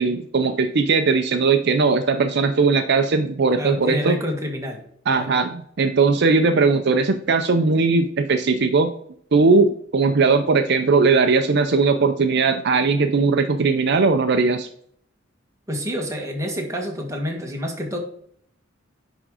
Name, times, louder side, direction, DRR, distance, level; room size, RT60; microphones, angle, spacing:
voice 1, 0.0-4.2 5.1-8.9 9.3-14.7, right 4 dB, 60° right, 8 dB, 0.6 m, -19 dB
voice 2, 3.5-4.8 5.2-5.3 15.7-18.0, equal, 15° right, 1 dB, 1.6 m, -28 dB
10.0 x 3.7 x 4.9 m, 0.65 s
head